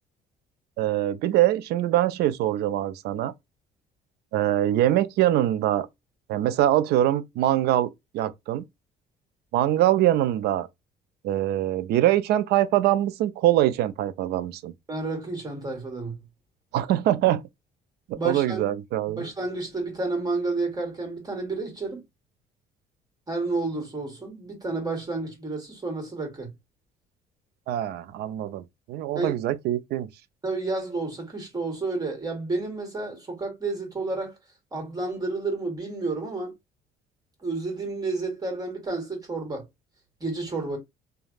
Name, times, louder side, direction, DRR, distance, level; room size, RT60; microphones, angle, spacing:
voice 1, 0.8-3.3 4.3-5.9 6.3-8.6 9.5-10.7 11.2-14.7 16.7-17.4 18.1-19.3 27.7-30.1, right 13 dB, 75° right, 0.4 m, -23 dB
voice 2, 14.9-16.2 18.1-18.7 19.2-22.0 23.3-26.5 29.1-29.3 30.4-34.3 34.7-36.5 37.4-39.6 40.2-40.8, right 3 dB, 20° right, 1.4 m, -30 dB
3.2 x 2.3 x 2.3 m
cardioid pair, 110°, 17 cm